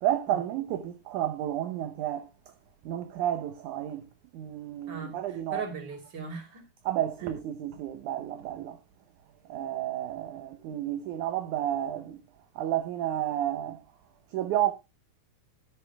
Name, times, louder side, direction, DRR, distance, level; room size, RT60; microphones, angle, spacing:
voice 1, 0.0-2.3 2.9-4.0 4.3-5.6 6.9-8.8 9.5-12.2 12.6-13.8 14.3-14.7, right 12 dB, 70° right, 2.0 m, -31 dB
voice 2, 4.9-6.6 7.2-7.3, right 4 dB, 30° right, 3.4 m, -39 dB
13.5 x 10.5 x 2.3 m
omnidirectional pair, 4.2 m